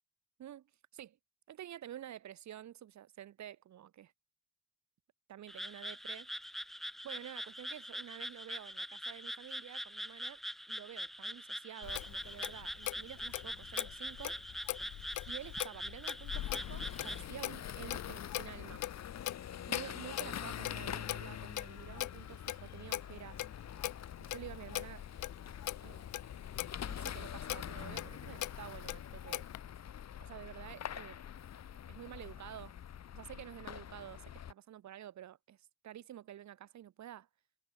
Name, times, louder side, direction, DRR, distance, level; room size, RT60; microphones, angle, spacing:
voice 1, 1.5-4.1 5.3-6.3 7.0-10.4 10.7-14.4 15.2-18.8 19.7-23.4 24.2-25.0 25.8-26.1 26.8-29.5 30.2-31.2 31.9-32.7 33.1-37.3, right 11 dB, 65° right, 1.9 m, -50 dB
Frog, 5.5-17.2, equal, ahead, 1.3 m, -43 dB
Clock, 11.8-29.6, left 15 dB, 80° left, 1.1 m, -42 dB
sound 1, 16.3-34.5, left 9 dB, 60° left, 3.9 m, -45 dB
cardioid pair, 90°, 30 cm